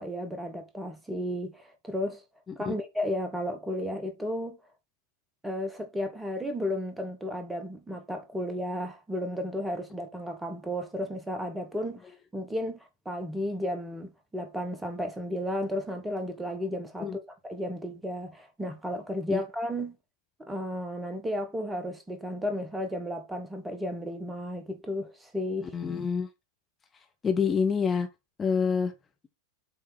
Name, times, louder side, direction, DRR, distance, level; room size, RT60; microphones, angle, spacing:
voice 1, 0.0-2.2 2.6-4.6 5.4-12.1 12.3-12.8 13.0-20.0 20.4-25.7, left 1 dB, 10° right, 1.3 m, -33 dB
voice 2, 25.7-26.3 27.2-28.1 28.4-28.9, left 6 dB, 20° left, 1.0 m, -26 dB
7.7 x 3.6 x 4.6 m
figure-of-eight pair, 90°, 0 cm